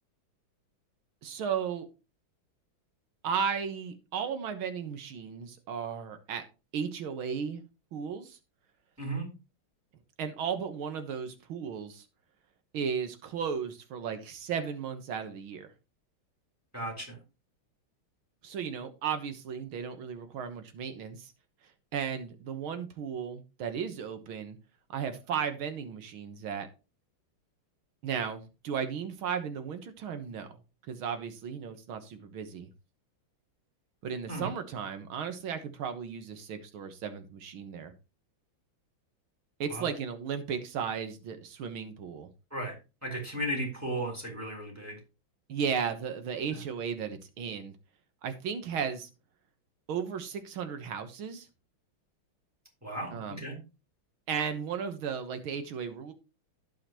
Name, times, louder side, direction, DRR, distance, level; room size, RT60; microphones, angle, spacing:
voice 1, 1.2-1.9 3.2-6.4 6.7-7.6 7.9-8.4 10.2-12.1 12.7-15.7 18.4-21.3 21.9-24.6 24.9-26.7 28.0-30.5 30.9-32.7 34.0-37.9 39.6-42.3 45.5-47.8 48.2-49.1 49.9-51.5 53.1-53.4 54.3-56.1, right 7 dB, 85° right, 8 dB, 2.0 m, -35 dB
voice 2, 9.0-9.3 16.7-17.2 34.3-34.5 39.7-39.9 42.5-42.8 43.0-45.0 46.5-46.6 52.8-53.6, right 1 dB, 5° right, -1 dB, 4.3 m, -35 dB
15.5 x 5.8 x 3.0 m, 0.29 s
omnidirectional pair, 2.3 m